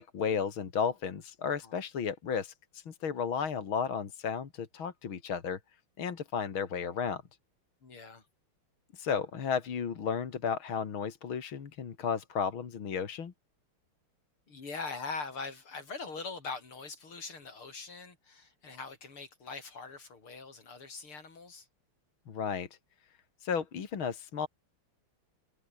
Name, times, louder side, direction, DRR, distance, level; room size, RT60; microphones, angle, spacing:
voice 1, 0.0-5.6 6.0-7.2 8.9-13.3 22.3-22.7 23.4-24.5, left 6 dB, 70° left, 2.9 m, -33 dB
voice 2, 7.8-8.2 14.5-21.7, left 4 dB, 90° left, 5.3 m, -42 dB
omnidirectional pair, 2.3 m